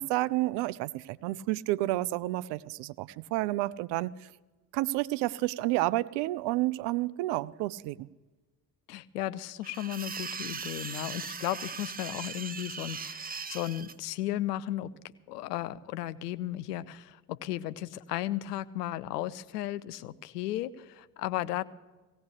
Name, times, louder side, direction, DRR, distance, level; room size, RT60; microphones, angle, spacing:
voice 1, 0.0-4.3 4.7-8.1, right 18 dB, 60° right, 18 dB, 0.5 m, -30 dB
voice 2, 8.9-14.9 15.3-21.6, left 13 dB, 80° left, 15 dB, 0.6 m, -35 dB
sound 1, 9.6-13.9, right 6 dB, 20° right, 0.6 m, -39 dB
18.0 x 16.5 x 3.3 m, 1.2 s
figure-of-eight pair, 45°, 47 cm